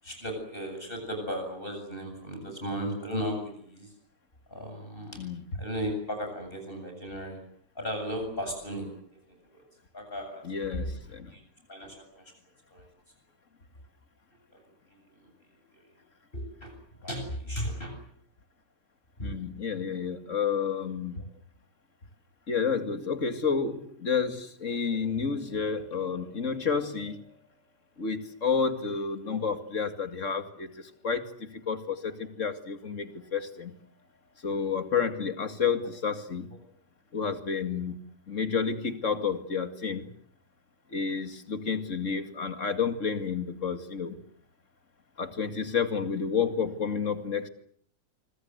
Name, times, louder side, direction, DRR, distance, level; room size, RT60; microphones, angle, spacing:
voice 1, 0.0-3.9 4.5-5.2 5.6-7.4 7.7-8.9 9.3-9.6 9.9-10.4 10.7-11.4 11.7-12.3 12.7-12.9 14.5-14.6 15.2-15.3 15.7-15.9 16.3-16.7 17.0-17.9 19.2-19.3 24.9-25.0 29.3-29.4, equal, 30° left, 4 dB, 8.1 m, -35 dB
voice 2, 10.4-11.3 19.2-21.3 22.5-27.3 28.0-33.7 34.4-36.5 37.1-40.1 40.9-44.2 45.2-47.5, left 6 dB, 45° left, 8 dB, 2.6 m, -30 dB
25.5 x 25.0 x 8.1 m, 0.63 s
omnidirectional pair, 1.8 m